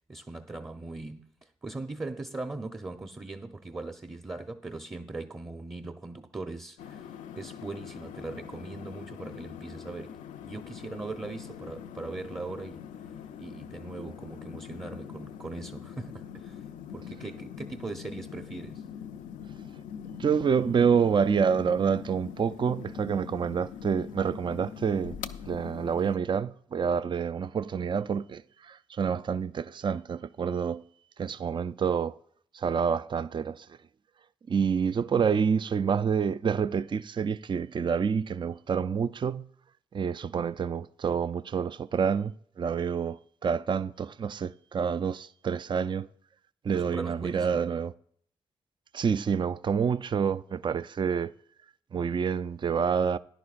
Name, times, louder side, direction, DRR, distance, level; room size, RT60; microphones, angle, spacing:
voice 1, 0.1-7.1 7.4-10.2 10.4-12.9 13.4-16.6 16.9-18.8 46.7-47.8, right 3 dB, 20° right, 0.7 m, -40 dB
sound 1, 6.8-26.2, left 8 dB, 85° left, 0.5 m, -43 dB
voice 2, 20.2-25.2 25.5-30.8 31.2-32.1 32.5-33.7 34.5-39.5 39.9-46.1 46.6-47.9 48.9-51.3 51.9-53.2, right 6 dB, 40° right, 0.4 m, -28 dB
14.0 x 10.5 x 2.5 m
supercardioid pair, 50°, 13 cm